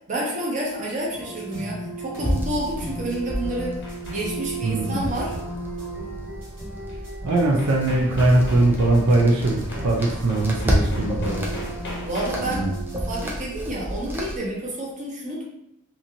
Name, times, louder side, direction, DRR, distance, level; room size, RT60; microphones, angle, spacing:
voice 1, 0.1-3.8 4.1-5.3 12.0-12.6 13.0-15.4, right 1 dB, 35° right, -4 dB, 0.7 m, -29 dB
sound 1, 1.1-13.2, right 1 dB, 55° right, 1.1 m, -36 dB
sound 2, 2.2-14.4, equal, 10° right, 0.3 m, -31 dB
sound 3, 2.8-4.5 6.9-7.0 7.3-12.6, left 1 dB, 50° left, 0.7 m, -40 dB
voice 2, 4.6-5.0 7.2-11.5 12.4-12.7, right 2 dB, 75° right, 0 dB, 0.4 m, -21 dB
2.8 x 2.7 x 2.6 m, 0.82 s
head